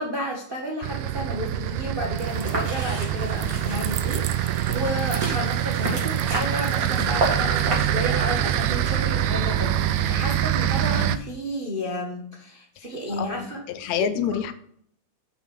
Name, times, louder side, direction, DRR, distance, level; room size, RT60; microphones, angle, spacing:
voice 1, 0.0-13.6 14.0-14.1, equal, 55° right, -1 dB, 0.5 m, -32 dB
sound 1, 0.8-11.2, right 11 dB, 90° right, 2.0 m, -25 dB
sound 2, 2.2-7.8, right 2 dB, 35° right, 1.9 m, -31 dB
sound 3, 2.2-2.7 3.0-7.3, right 11 dB, 75° right, 1.4 m, -39 dB
voice 2, 13.2-14.5, left 8 dB, 75° left, 10 dB, 1.9 m, -27 dB
6.2 x 6.0 x 5.6 m, 0.65 s
omnidirectional pair, 3.3 m